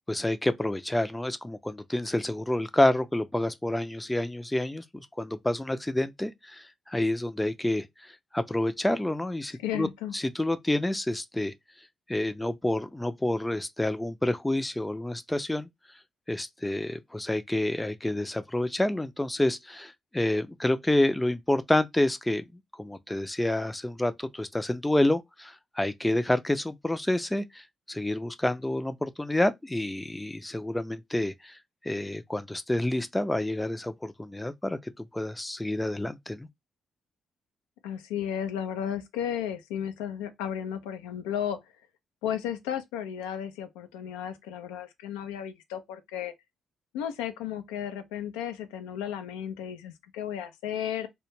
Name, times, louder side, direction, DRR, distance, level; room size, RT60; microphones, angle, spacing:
voice 1, 0.1-9.9 10.1-11.5 12.1-15.7 16.3-22.4 22.8-31.6 31.8-36.5, left 1 dB, 10° left, 0.4 m, -28 dB
voice 2, 9.6-10.1 37.8-41.6 42.2-46.3 46.9-51.1, left 9 dB, 90° left, 0.3 m, -34 dB
2.2 x 2.0 x 3.0 m
hypercardioid pair, 50°, 0 cm